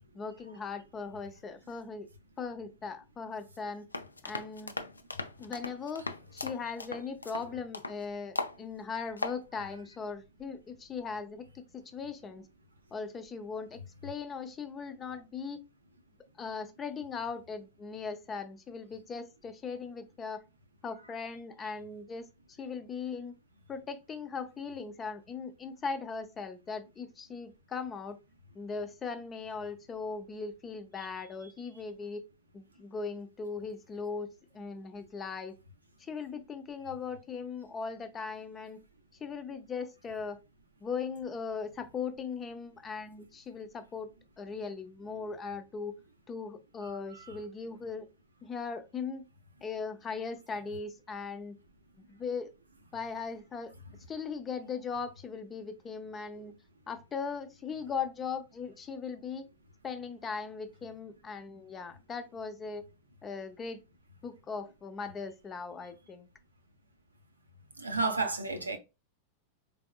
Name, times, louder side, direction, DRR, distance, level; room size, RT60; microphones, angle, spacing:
voice 1, 0.1-2.1 2.4-3.9 4.2-4.7 5.4-12.5 12.9-15.6 16.4-20.4 20.8-22.3 22.6-23.3 23.7-28.2 28.5-32.2 32.5-34.3 34.5-35.6 36.0-38.8 39.2-40.4 40.8-44.1 44.4-45.9 46.3-48.1 48.4-49.3 49.6-51.6 52.1-52.5 52.9-53.7 54.1-56.5 56.9-59.5 59.8-62.8 63.2-63.8 64.2-66.3, left 5 dB, 20° left, 0.6 m, -39 dB
sound 1, 3.9-8.0 8.4-8.6 8.9-9.4, left 3 dB, 80° left, 0.3 m, -38 dB
voice 2, 67.8-68.8, right 3 dB, 80° right, 0.6 m, -31 dB
4.4 x 3.4 x 2.3 m
figure-of-eight pair, 90°, 0 cm